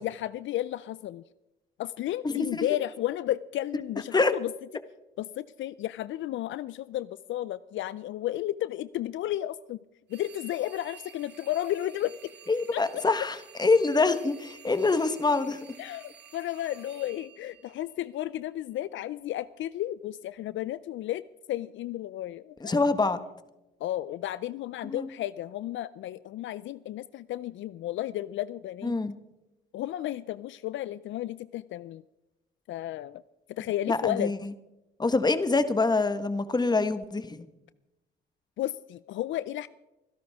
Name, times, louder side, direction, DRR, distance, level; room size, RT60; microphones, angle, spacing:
voice 1, 0.0-1.2 1.8-4.5 5.2-9.8 10.1-12.3 12.7-13.0 15.8-21.2 21.5-22.8 23.8-29.0 29.7-32.0 32.7-33.2 33.5-34.3 38.6-39.7, left 13 dB, 75° left, 17 dB, 0.5 m, -33 dB
voice 2, 2.2-2.7 4.1-4.3 12.5-15.6 22.6-23.2 24.9-25.1 28.8-29.1 33.9-34.5 35.0-37.5, left 3 dB, 20° left, 11 dB, 1.3 m, -25 dB
sound 1, 10.1-18.3, right 7 dB, 60° right, 4.0 m, -52 dB
26.0 x 11.5 x 3.6 m, 0.98 s
cardioid pair, 90°, 20 cm